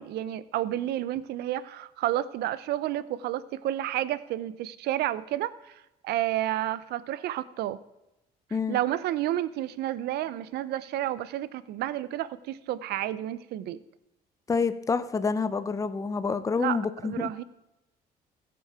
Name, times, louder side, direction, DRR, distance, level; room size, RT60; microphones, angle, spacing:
voice 1, 0.0-7.8 8.7-13.8 16.6-16.8 17.0-17.4, right 13 dB, 75° right, 17 dB, 0.7 m, -31 dB
voice 2, 14.5-17.3, left 5 dB, 20° left, 12 dB, 0.6 m, -28 dB
16.0 x 7.0 x 4.8 m, 0.93 s
cardioid pair, 110°, 17 cm